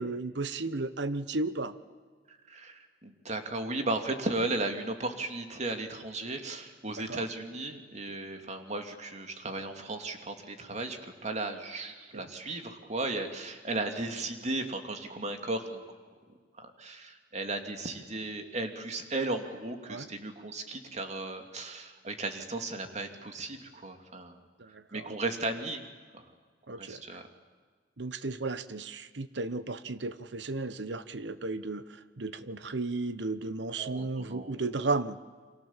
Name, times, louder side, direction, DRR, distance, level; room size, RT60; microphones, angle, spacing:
voice 1, 0.0-1.7 7.0-7.2 12.1-12.3 19.9-20.1 24.6-25.1 26.7-27.0 28.0-35.2, right 3 dB, 70° right, 14 dB, 1.1 m, -34 dB
voice 2, 2.3-15.8 16.6-24.4 24.7-25.8 26.1-26.3 26.7-27.2 33.8-34.5, right 2 dB, 40° right, 5 dB, 2.7 m, -35 dB
30.0 x 25.0 x 7.4 m, 1.5 s
head